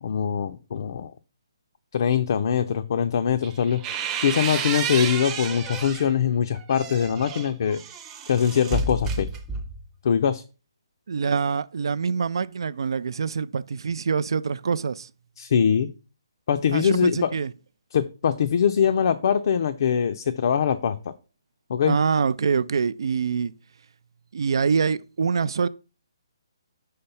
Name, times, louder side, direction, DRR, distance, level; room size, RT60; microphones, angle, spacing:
voice 1, 0.0-1.1 1.9-7.8 8.3-9.3 10.0-10.4 15.4-15.9 16.5-17.3 17.9-21.1 21.7-22.0, left 7 dB, 55° left, 0.4 m, -23 dB
sound 1, 3.4-6.1 6.5-9.9, right 5 dB, 15° right, 0.7 m, -31 dB
voice 2, 11.1-15.1 16.7-17.5 21.8-23.5 24.3-25.7, right 5 dB, 65° right, 0.4 m, -25 dB
5.7 x 3.2 x 5.5 m
hypercardioid pair, 150°, 3 cm